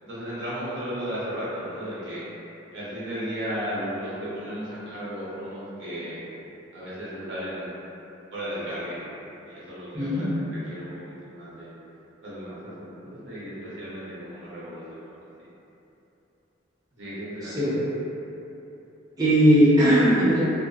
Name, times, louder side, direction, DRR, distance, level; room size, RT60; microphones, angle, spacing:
voice 1, 0.0-2.2 2.7-6.2 6.7-7.7 8.3-9.2 9.5-10.1 10.5-11.7 12.2-15.0 17.0-17.7, equal, 70° right, -10 dB, 0.8 m, -35 dB
voice 2, 9.9-10.3 17.4-17.8 19.2-20.4, equal, 20° right, -13 dB, 0.6 m, -19 dB
2.6 x 2.3 x 2.4 m, 3.0 s
head